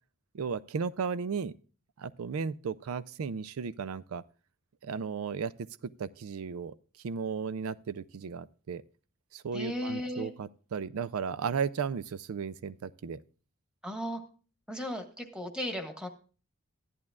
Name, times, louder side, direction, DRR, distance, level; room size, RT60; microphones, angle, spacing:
voice 1, 0.3-1.5 2.0-4.2 4.8-5.5 6.0-6.7 7.0-8.8 9.3-13.2, right 6 dB, 85° right, 0.4 m, -35 dB
voice 2, 9.5-10.3 13.8-14.2 14.7-16.1, equal, 5° right, 1.4 m, -35 dB
15.0 x 11.0 x 2.3 m
head